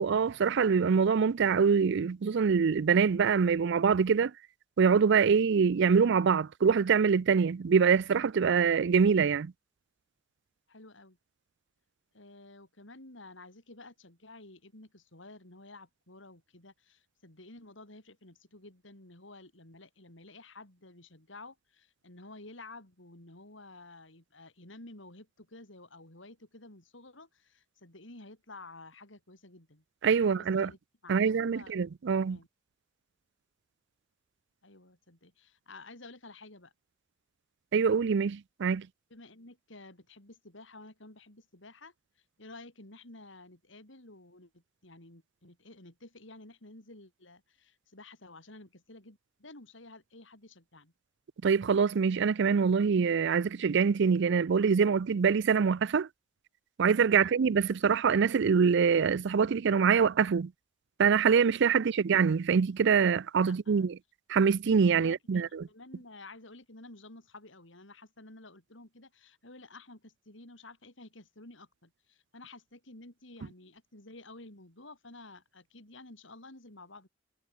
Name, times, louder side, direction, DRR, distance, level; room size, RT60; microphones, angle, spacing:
voice 1, 0.0-4.3 4.8-9.5 30.0-30.7 31.1-32.4 37.7-38.9 51.4-56.1 56.8-60.5 61.0-64.0 64.3-65.7, right 6 dB, 65° right, 0.4 m, -25 dB
voice 2, 10.7-11.2 12.1-29.8 30.2-30.8 31.0-31.7 32.2-32.5 34.6-36.7 39.1-41.9 42.4-50.9 57.1-57.3 61.8-61.9 63.5-63.8 65.0-77.1, left 2 dB, 70° left, 5.2 m, -52 dB
head